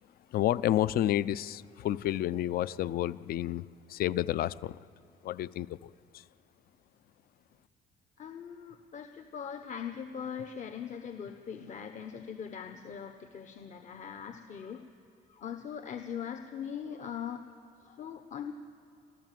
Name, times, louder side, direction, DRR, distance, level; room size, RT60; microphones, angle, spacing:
voice 1, 0.3-4.8 5.2-6.3, left 12 dB, 60° left, 19 dB, 0.5 m, -30 dB
voice 2, 8.2-14.8 15.3-17.4 17.8-18.5, left 7 dB, 45° left, 7 dB, 1.2 m, -41 dB
27.5 x 14.5 x 7.6 m, 2.8 s
cardioid pair, 110°, 17 cm